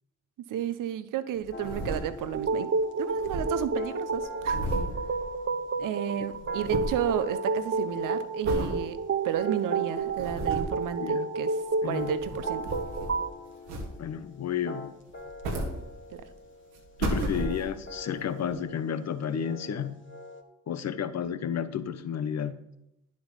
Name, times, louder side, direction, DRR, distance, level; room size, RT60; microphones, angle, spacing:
voice 1, 0.5-2.7 3.0-4.6 5.8-9.0 9.2-11.5 11.8-12.7 16.1-16.2, right 10 dB, 70° right, 13 dB, 0.9 m, -32 dB
sound 1, 1.4-2.5 2.8-2.9 3.0-5.8 6.1-7.1 7.6-7.9 8.4-8.8 9.3-9.4 10.0-10.8 11.8-13.3 13.7-14.3 15.1-16.3 16.7-17.9 18.5-18.6, right 1 dB, 90° right, 1.9 m, -34 dB
sound 2, 1.5-20.4, left 3 dB, 35° left, 1.9 m, -45 dB
sound 3, 2.3-13.3, right 4 dB, 40° right, 1.1 m, -30 dB
voice 2, 11.0-11.3 11.8-12.1 14.0-14.9 17.0-20.0 20.7-22.6, left 7 dB, 50° left, 12 dB, 1.0 m, -32 dB
10.5 x 7.7 x 5.3 m, 0.83 s
hypercardioid pair, 45°, 33 cm